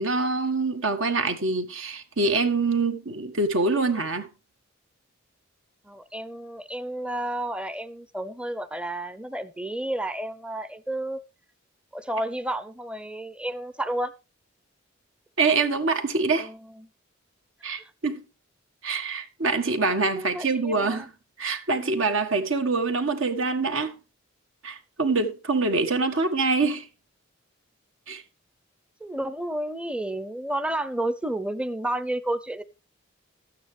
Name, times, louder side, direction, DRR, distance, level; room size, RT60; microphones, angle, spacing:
voice 1, 0.0-4.3 15.4-16.5 17.6-18.2 18.8-21.1 21.4-24.0 24.6-26.9 28.1-28.2, right 3 dB, 70° right, 1.6 m, -25 dB
voice 2, 5.8-11.2 11.9-14.1 16.4-16.9 17.7-17.8 20.2-21.1 29.0-32.6, right 1 dB, 5° right, 0.6 m, -31 dB
12.5 x 9.1 x 3.3 m
head